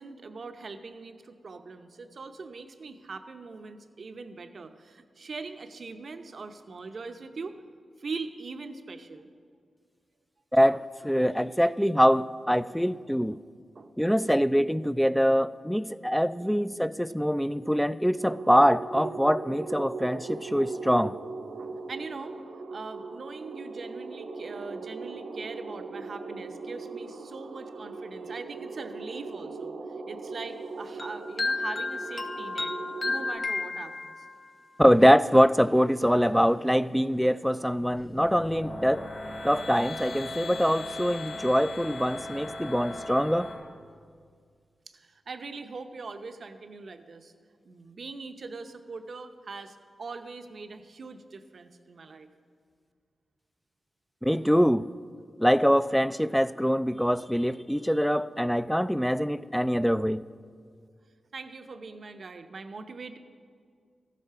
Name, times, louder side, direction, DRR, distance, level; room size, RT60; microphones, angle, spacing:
voice 1, 0.0-7.5 8.0-9.3 13.3-13.4 13.7-13.9 14.2-14.3 16.4-16.6 21.6-22.3 22.7-29.7 30.1-32.7 33.0-34.3 44.9-47.3 47.6-52.3 61.3-63.2, right 4 dB, 65° right, 8 dB, 0.7 m, -41 dB
voice 2, 10.5-13.4 14.0-21.1 34.8-39.0 39.4-43.5 54.2-54.9 55.4-60.2, equal, ahead, 16 dB, 0.3 m, -24 dB
sound 1, 18.2-33.4, right 3 dB, 85° right, 1.0 m, -39 dB
sound 2, 31.0-34.5, left 3 dB, 40° left, 0.7 m, -32 dB
sound 3, 37.9-43.5, left 2 dB, 80° left, 2.3 m, -38 dB
14.0 x 8.3 x 5.7 m, 2.1 s
cardioid pair, 60°, 0 cm